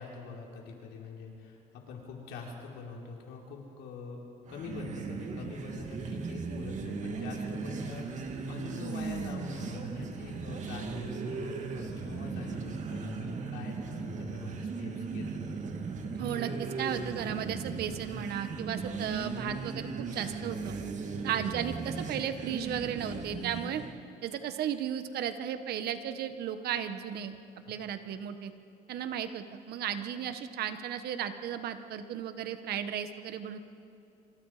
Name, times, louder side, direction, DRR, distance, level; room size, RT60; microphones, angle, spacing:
voice 1, 0.0-4.2 4.5-15.5, left 4 dB, 90° left, -1 dB, 4.5 m, -44 dB
sound 1, 4.5-23.9, right 4 dB, 45° right, 2.6 m, -37 dB
voice 2, 16.1-20.7 21.2-23.8 24.2-27.4 27.7-28.5 28.9-33.6, right 9 dB, 70° right, 9 dB, 1.5 m, -35 dB
26.5 x 26.0 x 5.1 m, 2.7 s
cardioid pair, 110°, 17 cm